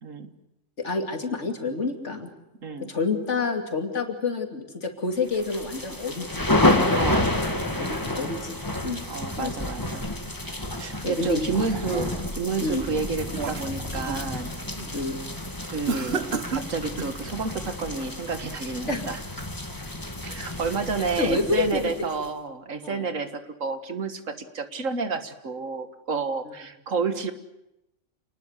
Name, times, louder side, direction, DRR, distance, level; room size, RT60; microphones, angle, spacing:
voice 1, 0.0-0.3 2.6-2.9 6.9-7.3 9.1-10.0 10.8-14.5 15.7-19.2 20.2-27.3, right 4 dB, 80° right, 9 dB, 2.0 m, -30 dB
voice 2, 0.8-2.3 2.9-6.5 7.8-9.0 9.4-9.5 11.0-11.5 12.6-12.8 14.9-15.2 18.9-19.0 21.2-21.9 22.8-23.1 26.5-26.6, left 3 dB, 65° left, 5 dB, 3.1 m, -28 dB
sound 1, 5.3-22.3, left 1 dB, 15° left, 2.0 m, -29 dB
sound 2, 11.3-12.4 12.9-14.3 14.7-15.0 15.9-17.2, right 5 dB, 55° right, 1.5 m, -32 dB
28.0 x 20.0 x 8.2 m, 0.89 s
omnidirectional pair, 1.3 m